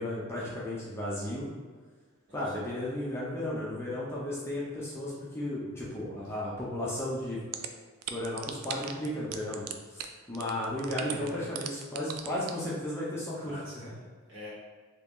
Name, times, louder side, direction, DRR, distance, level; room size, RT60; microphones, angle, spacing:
voice 1, 0.0-1.5 2.3-7.4 8.1-10.0 10.3-13.9, left 1 dB, 10° left, -6 dB, 0.5 m, -34 dB
sound 1, 7.5-7.7 8.0-9.1 9.3-9.7 10.0-10.1 10.3-11.3 11.5-12.5, right 11 dB, 85° right, 0.3 m, -35 dB
voice 2, 11.1-11.5 13.4-14.5, equal, 55° right, -8 dB, 1.3 m, -45 dB
2.9 x 2.7 x 3.5 m, 1.5 s
head